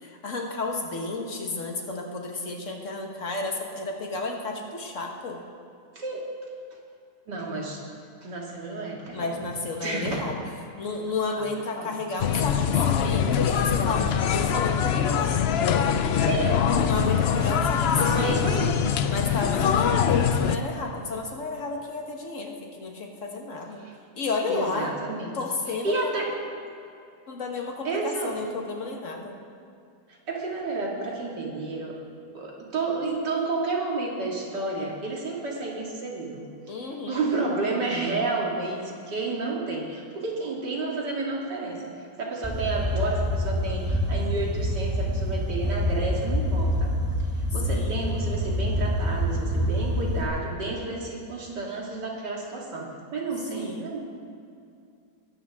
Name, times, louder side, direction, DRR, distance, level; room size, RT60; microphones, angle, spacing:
voice 1, 0.0-5.4 9.1-10.4 10.8-15.4 16.8-18.5 19.1-23.8 24.2-24.9 25.3-26.2 27.3-29.4 36.7-37.2 47.7-48.1 53.5-54.0, left 3 dB, 50° left, 1 dB, 1.7 m, -32 dB
voice 2, 7.3-7.8 8.2-9.3 9.8-10.2 11.3-11.5 11.8-12.0 16.2-16.6 17.3-17.6 18.0-18.7 23.8-24.0 24.5-25.4 25.8-26.3 27.8-28.3 30.1-32.0 32.3-36.5 37.1-41.9 42.2-47.0 47.3-54.0, right 3 dB, 80° right, -2 dB, 2.9 m, -31 dB
sound 1, 12.2-20.6, left 7 dB, 85° left, 0.5 m, -23 dB
sound 2, 42.4-50.2, equal, 10° right, 1.1 m, -26 dB
21.5 x 13.0 x 3.6 m, 2.4 s
omnidirectional pair, 1.8 m